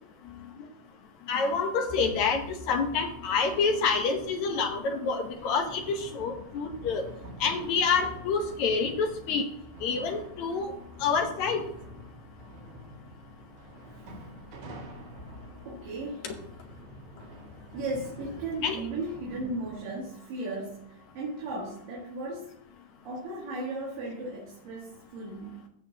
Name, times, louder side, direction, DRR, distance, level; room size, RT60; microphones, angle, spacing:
voice 1, 1.3-7.1 7.4-9.4 9.8-10.7 11.0-11.6 16.2-16.3 18.6-18.8, left 5 dB, 65° left, 5 dB, 2.0 m, -27 dB
sound 1, 1.9-19.8, equal, 85° right, 3.8 m, -46 dB
voice 2, 15.7-16.3 17.7-22.6 23.1-25.7, right 2 dB, 70° right, -4 dB, 3.6 m, -36 dB
16.5 x 6.6 x 2.9 m, 0.73 s
omnidirectional pair, 4.2 m